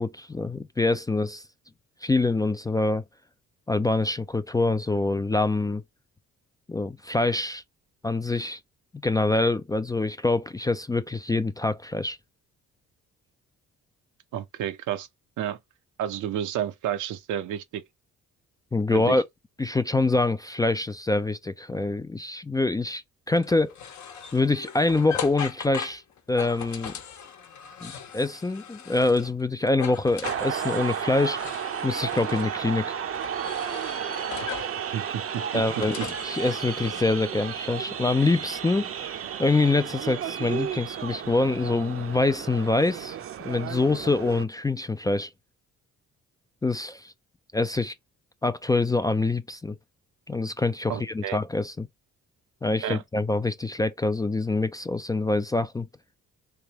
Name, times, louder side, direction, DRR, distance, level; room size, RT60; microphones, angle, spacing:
voice 1, 0.0-1.4 2.0-3.0 3.7-5.8 6.7-7.6 8.0-8.6 9.0-12.2 18.7-19.2 19.6-23.7 24.3-26.0 26.3-27.0 27.8-31.4 31.8-32.9 35.5-38.9 39.4-43.2 43.4-45.3 46.6-47.1 47.5-47.9 48.4-49.8 50.3-51.9 52.6-55.9, left 2 dB, 15° left, 0.3 m, -25 dB
voice 2, 14.3-15.1 15.4-15.6 16.0-17.8 18.9-19.2 34.9-36.1 50.9-51.4 52.8-53.0, right 10 dB, 80° right, 0.8 m, -31 dB
sound 1, 23.3-29.4 29.7-32.5 33.1-34.8 35.3-37.0, left 8 dB, 70° left, 1.0 m, -39 dB
sound 2, 30.2-44.4, right 8 dB, 50° right, 0.7 m, -33 dB
3.4 x 3.3 x 2.9 m
cardioid pair, 90°, 30 cm